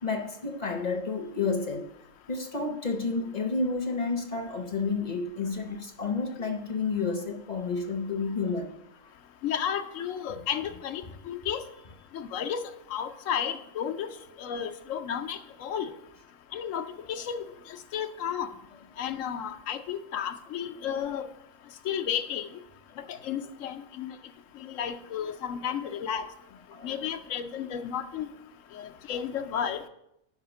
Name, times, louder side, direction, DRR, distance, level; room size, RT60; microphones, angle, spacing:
voice 1, 0.0-1.9 2.3-8.7 26.7-27.0, left 4 dB, 45° left, 0.6 m, -30 dB
voice 2, 9.4-11.6 12.1-12.6 12.9-14.1 14.4-15.9 16.5-17.4 17.9-18.5 19.0-21.3 21.8-22.5 23.1-24.1 24.6-26.3 26.8-28.3 28.7-29.8, left 8 dB, 90° left, 1.0 m, -32 dB
5.7 x 5.5 x 6.8 m
omnidirectional pair, 1.3 m